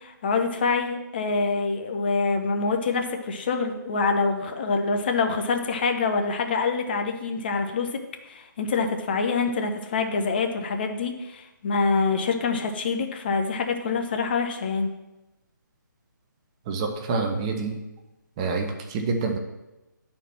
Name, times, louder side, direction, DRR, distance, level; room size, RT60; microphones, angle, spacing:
voice 1, 0.0-14.9, left 4 dB, 30° left, 5 dB, 0.6 m, -26 dB
voice 2, 16.7-17.8 18.4-19.4, right 4 dB, 20° right, 3 dB, 0.6 m, -27 dB
10.5 x 4.3 x 4.3 m, 0.99 s
figure-of-eight pair, 145°, 11 cm